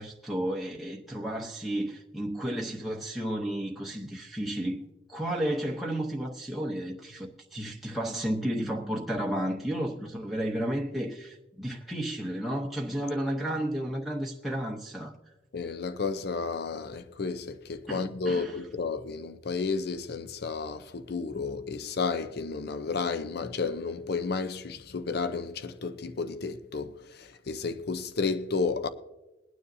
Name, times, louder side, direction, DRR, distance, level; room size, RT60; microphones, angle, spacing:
voice 1, 0.0-4.8 5.1-15.1 17.9-18.6, right 1 dB, ahead, 0.8 m, -32 dB
voice 2, 15.5-28.9, left 4 dB, 55° left, 0.6 m, -32 dB
21.5 x 9.4 x 2.7 m
head